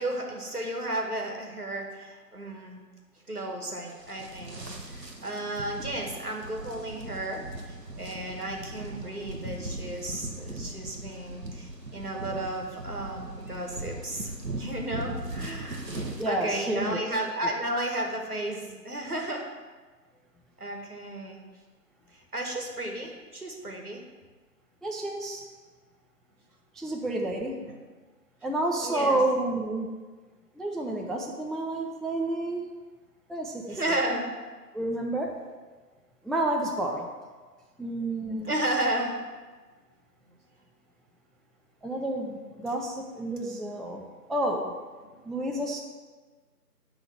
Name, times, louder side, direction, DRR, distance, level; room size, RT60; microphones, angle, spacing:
voice 1, 0.0-2.8 3.3-4.6 4.9-15.8 16.3-19.4 20.6-21.4 22.1-24.0 26.8-26.9 27.7-27.8 28.8-29.2 31.1-31.2 33.7-34.3 38.4-39.2 45.0-45.2, right 1 dB, 65° right, 1 dB, 1.9 m, -33 dB
sound 1, 3.9-16.3, right 2 dB, 90° right, 1.4 m, -39 dB
voice 2, 16.2-17.0 24.8-25.5 26.7-27.7 28.4-30.0 30.6-32.6 33.3-33.8 34.7-35.4 36.2-37.1 37.8-38.5 41.8-44.7 45.2-45.8, right 1 dB, ahead, 1 dB, 0.5 m, -30 dB
9.7 x 3.9 x 7.3 m, 1.4 s
figure-of-eight pair, 170°, 48 cm